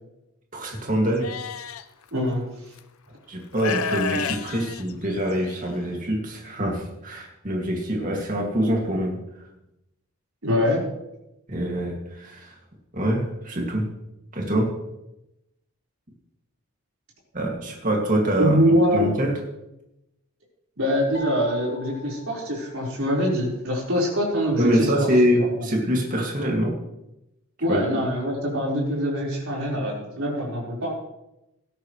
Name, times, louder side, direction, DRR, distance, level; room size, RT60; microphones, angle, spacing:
voice 1, 0.5-1.3 3.3-9.4 11.5-12.6 12.9-13.9 14.3-14.7 17.3-18.6 18.9-19.4 24.6-26.7 27.7-27.8, equal, 40° right, -1 dB, 2.4 m, -24 dB
Livestock farm animals working animals, 1.2-1.8 2.8-2.9 3.5-5.6, left 6 dB, 75° left, 0.7 m, -30 dB
voice 2, 2.1-2.5 10.4-10.8 18.4-19.1 20.8-24.7 25.6-25.7 27.6-30.9, equal, 70° right, -4 dB, 4.8 m, -24 dB
sound 1, 21.1-23.3, left 3 dB, 50° left, 2.4 m, -42 dB
17.0 x 13.0 x 3.3 m, 0.90 s
head